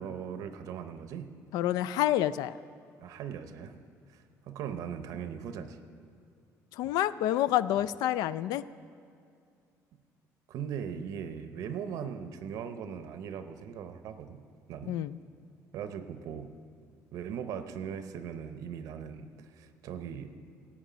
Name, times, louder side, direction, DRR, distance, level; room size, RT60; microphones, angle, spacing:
voice 1, 0.0-1.3 3.0-3.8 4.1-5.8 6.8-6.9 10.5-14.4 14.7-15.0 15.7-16.5 17.1-20.3, right 8 dB, 65° right, 10 dB, 0.6 m, -39 dB
voice 2, 1.5-2.5 6.7-8.6 14.9-15.2, left 13 dB, 90° left, 17 dB, 0.3 m, -28 dB
15.5 x 8.7 x 5.0 m, 2.3 s
cardioid pair, 175°, 6 cm